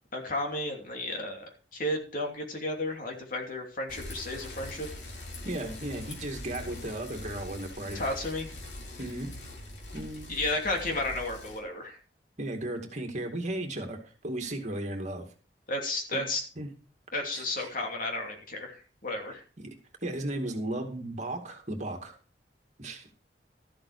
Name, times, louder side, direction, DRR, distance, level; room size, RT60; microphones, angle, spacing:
voice 1, 0.1-1.4 1.7-4.9 7.9-8.5 10.3-12.0 15.7-16.4 17.1-19.4, left 1 dB, 50° left, 2 dB, 2.9 m, -33 dB
Bicycle, 3.9-11.6, left 2 dB, 85° left, 3.6 m, -43 dB
voice 2, 5.4-8.0 9.0-9.3 9.9-10.3 12.4-14.0 14.2-15.3 16.1-16.2 16.6-16.7 17.3-17.7 19.6-19.7 20.0-22.1 22.8-23.1, right 1 dB, 45° right, 4 dB, 2.3 m, -35 dB
13.0 x 7.8 x 4.9 m, 0.37 s
head